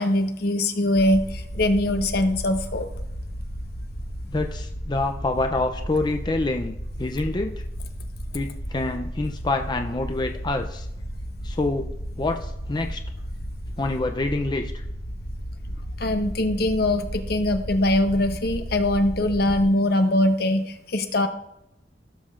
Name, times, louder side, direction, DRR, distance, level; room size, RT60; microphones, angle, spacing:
voice 1, 0.0-2.9 16.0-21.3, left 1 dB, 60° left, 7 dB, 1.0 m, -22 dB
sound 1, 1.0-19.6, equal, 45° left, 1.4 m, -34 dB
voice 2, 4.3-7.6 8.3-10.9 11.4-11.9 12.2-13.0 13.8-14.8, left 2 dB, 25° left, 5 dB, 0.5 m, -27 dB
16.0 x 7.5 x 2.5 m, 0.82 s
head